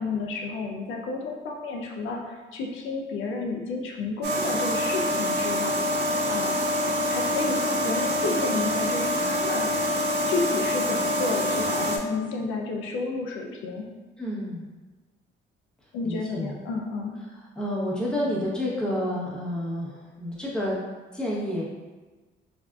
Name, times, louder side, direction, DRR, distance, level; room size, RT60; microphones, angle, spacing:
voice 1, 0.0-5.9 6.3-6.6 7.1-9.7 10.3-13.9 15.9-17.1, left 3 dB, 85° left, 0 dB, 0.4 m, -31 dB
sound 1, 4.2-12.0, left 1 dB, 55° right, 0.5 m, -26 dB
voice 2, 14.2-14.7 16.0-16.5 17.6-20.8 21.1-21.7, left 1 dB, 5° left, -6 dB, 0.8 m, -29 dB
3.5 x 2.4 x 2.2 m, 1.3 s
cardioid pair, 90°, 20 cm